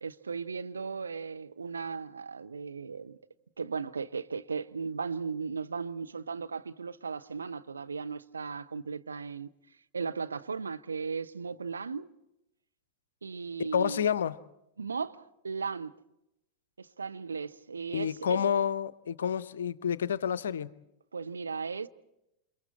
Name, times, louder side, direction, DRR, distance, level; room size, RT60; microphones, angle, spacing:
voice 1, 0.0-3.2 3.6-9.5 9.9-12.1 13.2-14.0 14.8-15.9 16.8-18.4 21.1-21.9, right 5 dB, 75° right, 0.7 m, -36 dB
voice 2, 13.7-14.4 17.9-20.7, left 8 dB, 65° left, 0.7 m, -29 dB
29.0 x 28.0 x 4.3 m
figure-of-eight pair, 90°, 0 cm